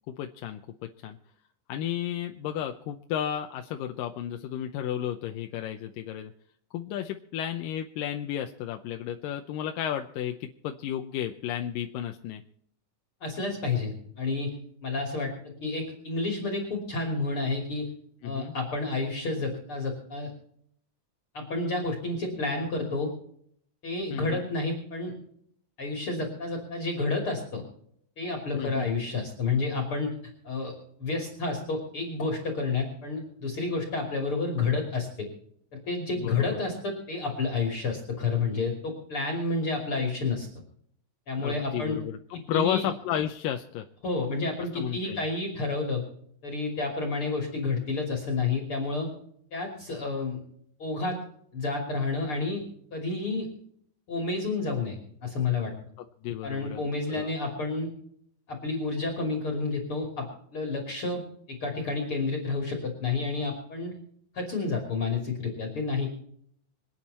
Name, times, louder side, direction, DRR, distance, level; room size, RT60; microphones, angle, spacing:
voice 1, 0.2-1.2 1.7-6.3 6.7-12.4 18.2-18.5 24.1-24.5 28.5-28.9 36.2-36.6 41.4-43.9 44.8-45.2 56.2-57.3, left 10 dB, 90° left, 5 dB, 2.5 m, -33 dB
voice 2, 13.2-14.5 14.8-17.9 18.2-20.3 21.3-23.1 23.8-25.1 25.8-27.6 28.2-30.1 30.4-35.3 35.7-40.5 41.3-42.0 42.3-42.9 44.0-46.0 46.4-49.1 49.5-50.4 50.8-51.2 51.5-52.6 52.9-53.5 54.1-55.0 55.2-55.7 56.4-57.9 58.5-60.3 60.5-61.2 61.5-63.9 64.3-66.1, left 3 dB, 40° left, 2 dB, 3.6 m, -30 dB
26.5 x 9.2 x 4.3 m, 0.66 s
omnidirectional pair, 3.9 m